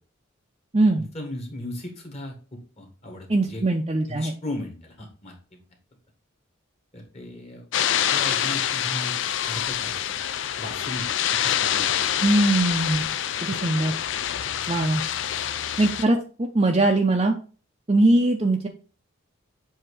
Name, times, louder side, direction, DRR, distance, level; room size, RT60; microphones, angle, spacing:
voice 1, 0.9-3.6 4.1-5.6 6.9-7.6 8.1-9.2 9.5-9.9 10.6-11.1 11.4-12.2, left 1 dB, 30° left, 1 dB, 1.5 m, -36 dB
voice 2, 3.3-4.3 12.2-13.1 13.4-13.9 14.7-15.0 15.8-16.2 16.5-17.4 17.9-18.7, right 2 dB, 30° right, 1 dB, 0.5 m, -21 dB
sound 1, 7.7-16.1, left 10 dB, 60° left, 0.4 m, -26 dB
7.5 x 2.8 x 4.8 m, 0.38 s
head